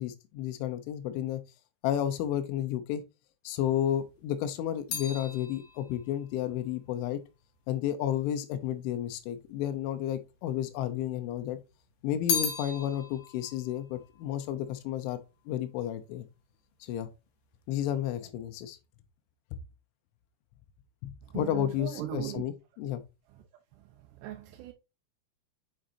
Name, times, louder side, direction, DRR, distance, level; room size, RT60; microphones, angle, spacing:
voice 1, 0.0-1.4 1.8-3.0 3.4-7.2 7.7-11.6 12.0-16.3 16.8-17.1 17.7-18.8 21.0-23.0, left 11 dB, 90° left, 3.2 m, -32 dB
sound 1, 3.9-8.4 9.1-9.9 10.2-11.4 11.7-15.2 15.5-16.0, left 6 dB, 60° left, 3.1 m, -37 dB
voice 2, 21.3-22.4 24.2-24.7, right 13 dB, 80° right, 2.7 m, -38 dB
7.7 x 5.0 x 2.6 m
omnidirectional pair, 5.3 m